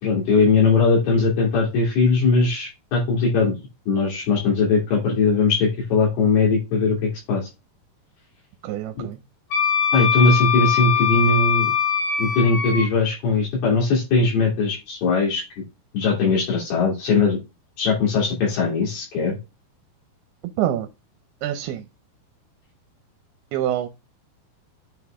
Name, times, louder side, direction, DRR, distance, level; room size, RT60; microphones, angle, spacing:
voice 1, 0.0-3.5 3.9-7.5 9.0-9.1 9.9-11.7 12.2-15.4 15.9-17.4 17.8-19.4, left 4 dB, 75° left, -3 dB, 4.9 m, -20 dB
voice 2, 8.6-9.2 20.6-20.9 21.4-21.9 23.5-23.9, right 12 dB, 80° right, 8 dB, 2.7 m, -25 dB
Wind instrument woodwind instrument, 9.5-12.9, left 8 dB, 55° left, 2.8 m, -21 dB
9.0 x 3.9 x 3.5 m, 0.25 s
omnidirectional pair, 4.6 m